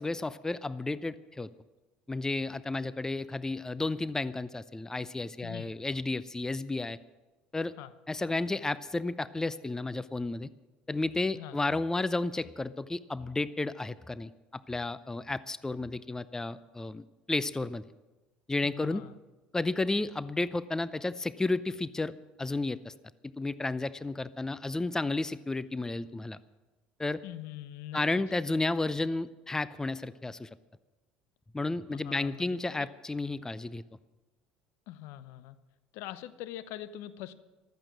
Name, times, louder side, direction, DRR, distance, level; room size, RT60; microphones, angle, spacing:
voice 1, 0.0-1.5 2.1-7.0 7.5-7.7 8.1-10.5 10.9-17.8 18.5-19.0 19.5-22.9 23.2-26.4 27.0-27.2 27.9-30.5 31.5-33.8, left 2 dB, 10° left, 16 dB, 0.6 m, -32 dB
voice 2, 5.4-5.7 7.8-7.9 11.3-11.6 18.6-19.2 27.2-28.0 31.9-32.9 34.9-35.6 35.9-37.3, left 13 dB, 60° left, 13 dB, 0.8 m, -43 dB
15.0 x 13.0 x 6.3 m, 1.2 s
hypercardioid pair, 65°, 5 cm